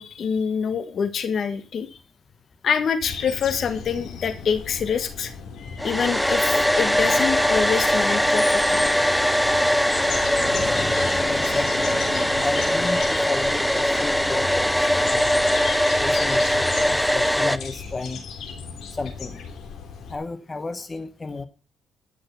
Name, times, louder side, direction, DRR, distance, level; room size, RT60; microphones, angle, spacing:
voice 1, 0.0-1.9 2.6-5.3 5.8-8.8, left 7 dB, 55° left, 11 dB, 1.5 m, -25 dB
sound 1, 3.0-20.1, left 5 dB, 70° left, 3.3 m, -35 dB
Domestic sounds home sounds, 5.8-17.6, equal, ahead, 0.7 m, -21 dB
voice 2, 11.1-11.9 12.4-15.3 16.0-18.2 18.9-19.5 20.1-21.5, left 3 dB, 25° left, 9 dB, 1.1 m, -32 dB
14.0 x 6.5 x 6.9 m, 0.38 s
cardioid pair, 90°, 0 cm